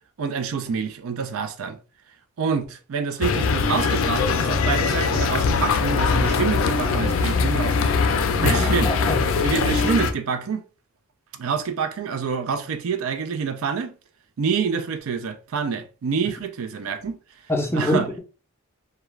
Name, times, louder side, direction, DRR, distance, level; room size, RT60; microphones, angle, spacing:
voice 1, 0.2-1.8 2.4-8.9 9.4-10.6 11.4-13.9 14.4-17.2 17.7-18.1, right 6 dB, 80° right, 0.4 m, -27 dB
sound 1, 3.2-10.1, left 4 dB, 70° left, 0.4 m, -21 dB
voice 2, 8.4-9.2 17.5-18.2, left 1 dB, 10° left, 0.5 m, -25 dB
2.3 x 2.2 x 3.1 m
head